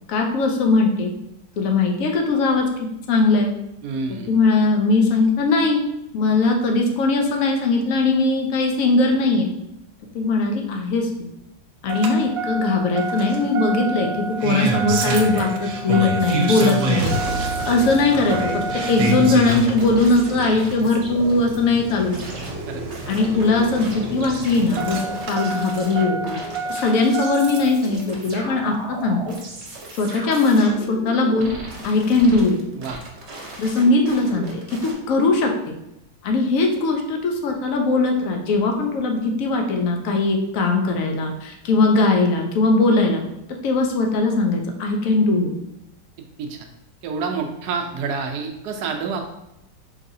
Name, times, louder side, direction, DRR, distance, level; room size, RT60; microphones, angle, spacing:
voice 1, 0.1-1.1 1.6-2.6 3.1-3.5 4.3-5.8 6.1-9.5 10.1-11.1 11.8-17.2 17.7-22.4 23.1-26.4 26.7-29.2 30.0-31.5 31.8-32.6 33.6-35.5 36.2-43.2 43.6-45.5, left 3 dB, 65° left, 2 dB, 0.9 m, -20 dB
voice 2, 3.8-4.3 19.0-19.4 22.7-22.8 32.7-33.0 46.4-46.7 47.0-49.3, right 5 dB, 70° right, 4 dB, 1.1 m, -28 dB
Engine starting, 11.9-27.8 29.1-29.2, right 2 dB, 90° right, 1.4 m, -27 dB
sound 1, 17.1-21.6 22.1-34.9, right 2 dB, 45° right, 1.0 m, -36 dB
4.7 x 3.3 x 2.6 m, 0.85 s
omnidirectional pair, 1.9 m